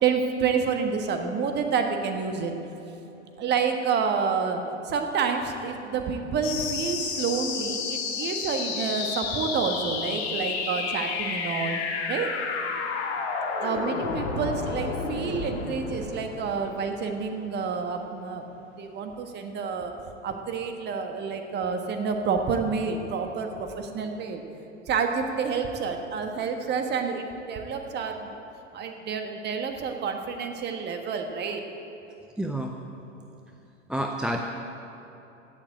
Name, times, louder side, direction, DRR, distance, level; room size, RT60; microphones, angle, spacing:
voice 1, 0.0-2.5 3.4-11.8 12.1-12.3 13.6-19.9 20.2-24.4 24.9-28.4 28.7-31.6, right 5 dB, 25° right, 5 dB, 1.4 m, -29 dB
sound 1, 6.4-17.4, left 5 dB, 55° left, 2.2 m, -31 dB
voice 2, 32.4-32.7 33.9-34.4, right 1 dB, ahead, 3 dB, 0.4 m, -28 dB
16.5 x 7.3 x 8.9 m, 3.0 s
figure-of-eight pair, 100°, 37 cm